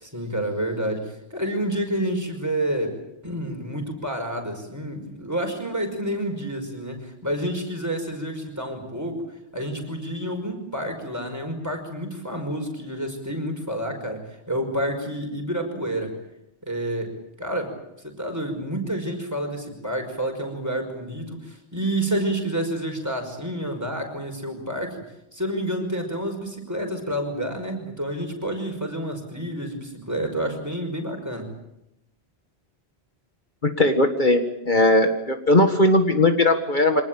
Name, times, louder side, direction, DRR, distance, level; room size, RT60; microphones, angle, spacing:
voice 1, 0.0-9.2 9.5-16.1 16.6-17.7 18.0-25.0 25.3-31.5, right 1 dB, 15° right, 4 dB, 5.5 m, -29 dB
voice 2, 33.6-34.4 34.7-37.0, left 2 dB, 50° left, 5 dB, 1.9 m, -18 dB
25.5 x 19.5 x 8.9 m, 0.85 s
omnidirectional pair, 1.1 m